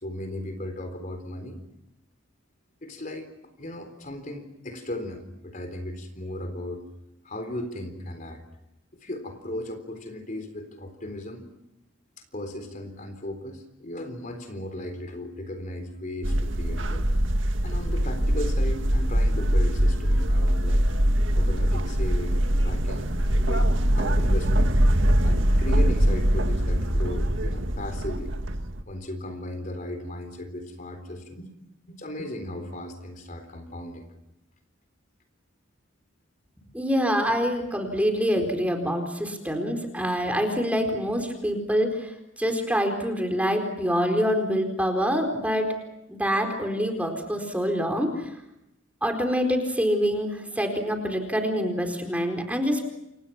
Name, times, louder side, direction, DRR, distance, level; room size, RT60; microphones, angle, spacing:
voice 1, 0.0-1.6 2.8-3.3 3.6-6.9 7.2-8.4 9.0-11.5 12.2-17.1 17.6-20.9 21.3-23.7 24.0-28.3 28.9-31.5 31.9-34.1, left 1 dB, 40° left, 7 dB, 3.9 m, -36 dB
sound 1, 16.2-28.8, equal, 75° right, 1.9 m, -23 dB
voice 2, 36.7-42.1 42.4-45.7 46.1-48.3 49.0-52.8, equal, 5° right, 5 dB, 4.5 m, -25 dB
29.5 x 26.5 x 6.0 m, 0.87 s
head